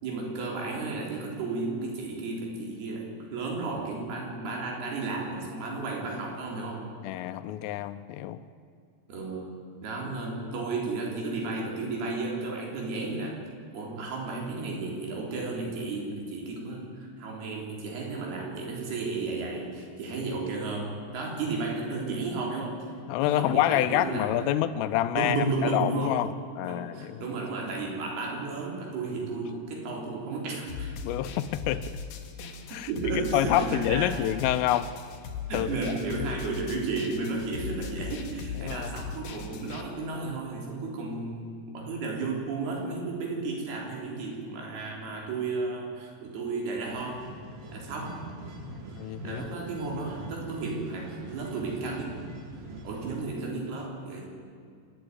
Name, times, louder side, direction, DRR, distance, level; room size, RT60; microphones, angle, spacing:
voice 1, 0.0-6.9 9.1-9.5 9.8-13.4 13.7-22.8 23.2-24.3 25.1-26.2 26.6-30.9 32.9-34.3 35.5-47.3 47.7-48.2 49.2-52.1 52.8-54.2, right 3 dB, 50° right, -1 dB, 5.2 m, -33 dB
voice 2, 7.0-8.4 23.1-27.2 31.0-31.8 32.7-34.9 35.5-35.7 38.6-38.9 48.6-49.4, left 13 dB, 80° left, 12 dB, 3.1 m, -28 dB
sound 1, 30.7-39.8, left 5 dB, 65° left, 2.3 m, -38 dB
sound 2, 46.8-53.2, right 2 dB, 70° right, 5.3 m, -43 dB
26.5 x 11.0 x 9.5 m, 2.3 s
omnidirectional pair, 6.0 m